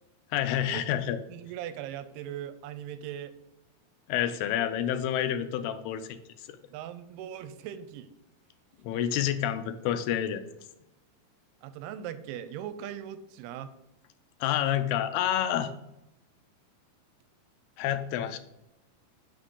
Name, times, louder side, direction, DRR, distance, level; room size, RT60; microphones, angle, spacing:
voice 1, 0.3-1.2 4.1-6.2 6.5-6.6 8.8-10.4 14.4-15.7 17.8-18.4, left 10 dB, 85° left, 9 dB, 2.6 m, -28 dB
voice 2, 1.3-3.3 6.7-8.1 11.6-13.7, right 10 dB, 85° right, 12 dB, 2.6 m, -39 dB
8.9 x 6.0 x 3.8 m, 0.89 s
omnidirectional pair, 4.6 m